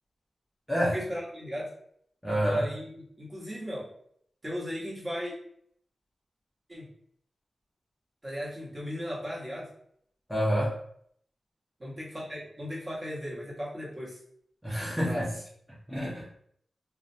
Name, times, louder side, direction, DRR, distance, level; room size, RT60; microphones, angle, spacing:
voice 1, 0.9-1.7 2.3-3.9 4.4-5.3 6.7-6.9 8.2-9.7 11.8-14.2 15.0-15.2, equal, 25° right, -7 dB, 1.0 m, -36 dB
voice 2, 2.2-2.6 10.3-10.8 14.6-15.3 15.9-16.4, equal, ahead, -8 dB, 0.6 m, -28 dB
2.4 x 2.1 x 2.6 m, 0.66 s
wide cardioid pair, 95°, 0 cm